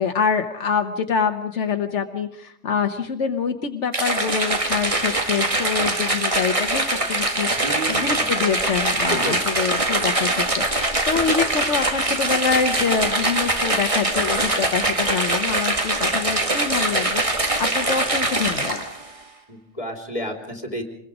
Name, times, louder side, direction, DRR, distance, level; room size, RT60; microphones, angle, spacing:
voice 1, 0.0-18.8, left 6 dB, 80° left, 6 dB, 1.4 m, -25 dB
sound 1, 3.9-19.0, right 2 dB, 30° right, 1.8 m, -23 dB
voice 2, 7.6-8.3 9.1-9.6 19.5-20.8, right 1 dB, 30° left, 3 dB, 3.5 m, -31 dB
26.0 x 21.5 x 5.0 m, 0.71 s
omnidirectional pair, 1.2 m